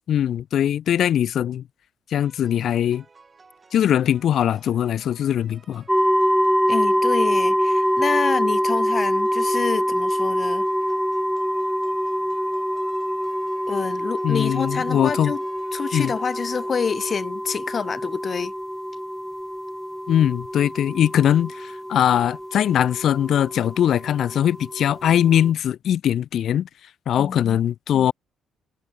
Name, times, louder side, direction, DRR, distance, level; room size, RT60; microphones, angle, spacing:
voice 1, 0.1-1.6 2.1-3.0 3.7-5.8 14.2-15.3 15.9-16.1 20.1-26.7 27.1-28.1, left 10 dB, 65° left, 0.5 m, -21 dB
sound 1, 2.2-17.2, right 4 dB, 35° right, 5.6 m, -53 dB
sound 2, 5.9-25.5, equal, ahead, 0.4 m, -25 dB
voice 2, 6.7-10.7 13.7-15.4 15.7-18.5 27.1-27.6, left 6 dB, 45° left, 1.0 m, -27 dB
cardioid pair, 75°, 0 cm